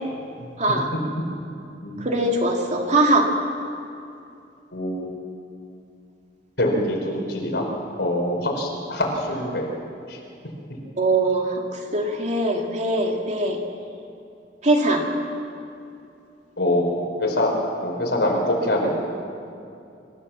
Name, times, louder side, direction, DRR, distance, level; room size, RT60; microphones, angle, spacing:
voice 1, 0.6-0.9 2.0-3.3 11.0-13.6 14.6-15.0, right 2 dB, 40° right, 1 dB, 2.4 m, -21 dB
voice 2, 4.7-5.1 6.6-7.6 8.0-9.7 10.1-10.2 16.6-16.9 17.2-17.5 17.8-18.9, left 1 dB, 75° left, 0 dB, 4.7 m, -24 dB
26.0 x 15.0 x 7.5 m, 2.6 s
head